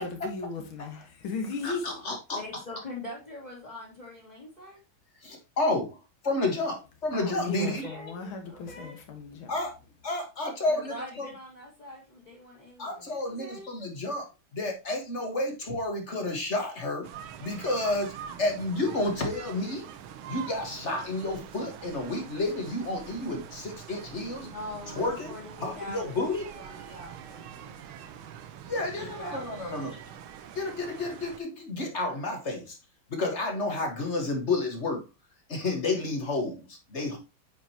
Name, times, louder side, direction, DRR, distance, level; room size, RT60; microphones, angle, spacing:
voice 1, 0.0-1.9 7.1-9.6, left 4 dB, 70° left, 2.3 m, -36 dB
voice 2, 1.6-2.4 5.2-6.0 6.2-7.9 9.5-9.7 10.0-10.9 12.8-14.3 14.5-17.1 17.4-19.9 20.3-24.5 24.9-25.3 25.6-26.5 28.7-30.0 30.5-32.8 33.1-35.0 35.5-37.2, left 2 dB, 35° left, 1.6 m, -30 dB
voice 3, 2.3-4.8 7.5-9.0 10.7-13.7 24.3-27.8 28.7-29.6, left 1 dB, 20° left, 2.1 m, -43 dB
sound 1, 17.0-31.4, right 9 dB, 75° right, 1.6 m, -44 dB
8.8 x 5.0 x 2.9 m
omnidirectional pair, 2.3 m